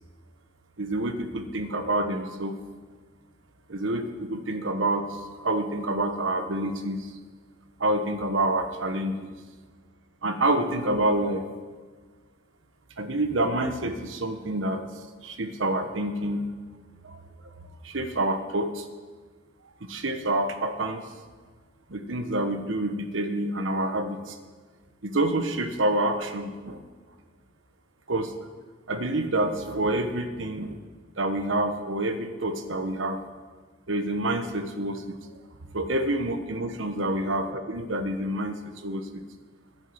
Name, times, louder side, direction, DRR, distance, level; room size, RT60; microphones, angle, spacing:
voice 1, 0.8-2.6 3.7-7.1 7.8-9.3 10.2-11.4 13.0-14.8 15.2-16.5 17.0-17.5 17.8-18.9 19.8-21.0 21.9-24.4 25.0-26.8 28.1-28.3 28.9-30.8 31.2-33.2 33.9-35.2 35.7-39.2, right 1 dB, 75° right, 7 dB, 1.2 m, -28 dB
10.5 x 9.7 x 7.9 m, 1.4 s
head